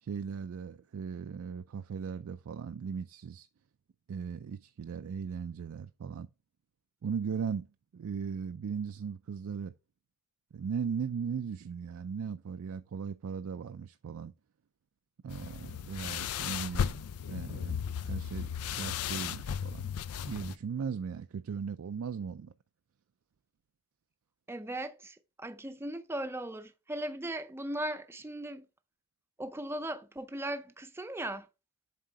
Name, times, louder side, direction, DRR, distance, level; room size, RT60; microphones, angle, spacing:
voice 1, 0.0-3.5 4.1-6.3 7.0-7.7 7.9-9.7 10.5-14.3 15.2-17.0 17.3-19.9 20.3-22.5, right 6 dB, 70° right, 0.4 m, -38 dB
sound 1, 15.3-20.6, left 8 dB, 85° left, 0.4 m, -35 dB
voice 2, 24.5-28.7 29.4-31.5, right 1 dB, 10° right, 0.5 m, -38 dB
7.6 x 3.7 x 4.5 m
head